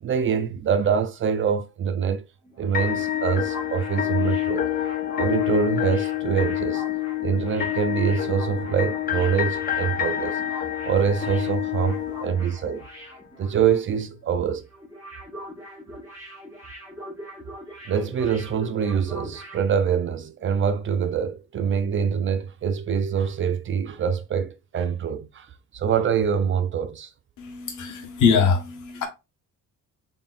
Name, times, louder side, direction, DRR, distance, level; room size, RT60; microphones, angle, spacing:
voice 1, 0.0-2.2 2.6-4.7 5.2-6.9 7.2-10.4 10.8-12.9 13.4-14.7 17.9-27.1, right 7 dB, 40° right, 0.4 m, -25 dB
sound 1, 2.4-14.0 14.2-14.4 14.7-19.7, left 1 dB, 10° right, 1.5 m, -43 dB
sound 2, 2.7-12.8, left 12 dB, 30° left, 0.5 m, -27 dB
voice 2, 27.4-29.1, left 5 dB, 65° left, 1.1 m, -22 dB
3.9 x 3.5 x 2.4 m
cardioid pair, 135°, 32 cm